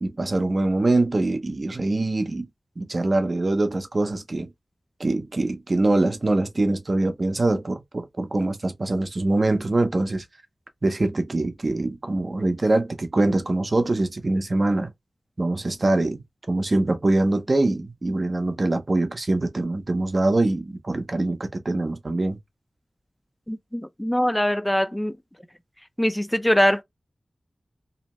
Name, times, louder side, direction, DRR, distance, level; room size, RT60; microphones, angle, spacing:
voice 1, 0.0-2.5 2.8-4.5 5.0-10.2 10.8-14.9 15.4-16.2 16.5-22.4, right 2 dB, 50° right, 0.6 m, -23 dB
voice 2, 23.5-25.2 26.0-26.8, equal, 10° left, 0.4 m, -22 dB
2.7 x 2.1 x 3.0 m
cardioid pair, 50°, 0 cm